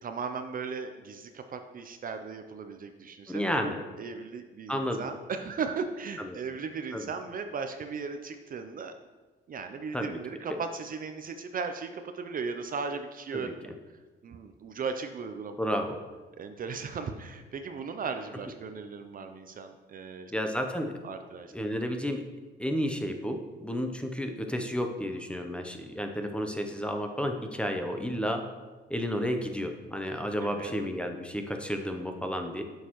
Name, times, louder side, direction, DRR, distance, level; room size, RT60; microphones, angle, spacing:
voice 1, 0.0-8.9 9.5-13.5 14.2-15.6 16.4-20.5 21.0-21.5 30.4-30.7, right 5 dB, 45° right, 7 dB, 0.5 m, -37 dB
voice 2, 3.3-3.8 4.7-5.0 6.2-6.3 6.9-7.1 9.9-10.2 13.3-13.5 15.6-16.0 20.3-20.9 21.5-22.2 22.6-28.4 28.9-32.6, equal, 5° left, 4 dB, 0.7 m, -31 dB
6.9 x 6.5 x 3.0 m, 1.3 s
cardioid pair, 90°, 20 cm